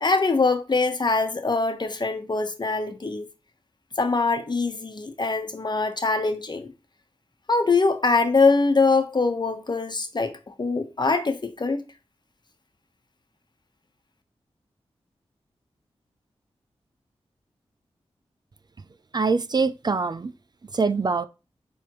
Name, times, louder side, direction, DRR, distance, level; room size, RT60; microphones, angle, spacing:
voice 1, 0.0-3.3 4.0-6.7 7.5-11.8, left 3 dB, 40° left, 1.0 m, -23 dB
voice 2, 19.1-20.3 20.7-21.2, right 4 dB, 40° right, 0.4 m, -23 dB
9.6 x 3.5 x 3.0 m
cardioid pair, 55°, 11 cm